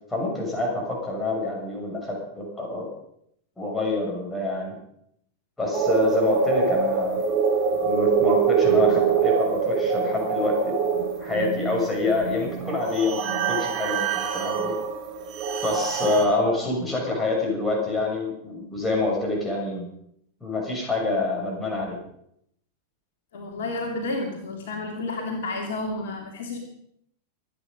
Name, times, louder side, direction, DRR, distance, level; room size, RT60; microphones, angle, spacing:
voice 1, 0.1-2.9 3.6-4.8 5.6-7.3 7.7-10.7 11.2-14.7 15.6-19.9 20.4-22.0, left 2 dB, 10° left, -1 dB, 6.7 m, -26 dB
sound 1, 5.7-16.3, right 6 dB, 40° right, 3.4 m, -24 dB
voice 2, 23.3-26.6, left 2 dB, 60° left, 2 dB, 2.8 m, -31 dB
25.0 x 9.5 x 5.3 m, 0.73 s
figure-of-eight pair, 90°, 0 cm